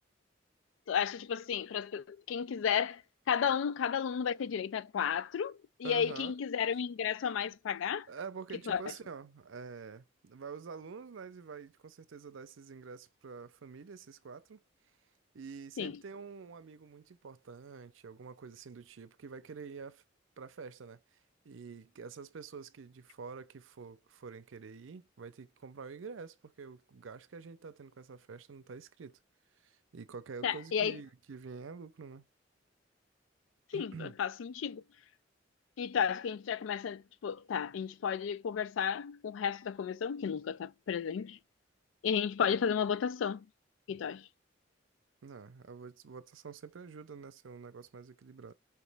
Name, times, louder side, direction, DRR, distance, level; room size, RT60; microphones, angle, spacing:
voice 1, 0.9-3.0 3.3-8.1 8.7-8.8 15.8-15.9 30.4-31.0 33.7-34.8 35.8-41.4 42.0-43.5 43.9-44.3, left 7 dB, 80° left, 0.3 m, -33 dB
voice 2, 5.8-6.3 8.1-14.6 15.3-20.0 20.4-21.0 21.4-29.2 29.6-32.3 33.7-34.1 45.2-48.5, right 5 dB, 85° right, 0.5 m, -47 dB
4.7 x 3.0 x 3.3 m
head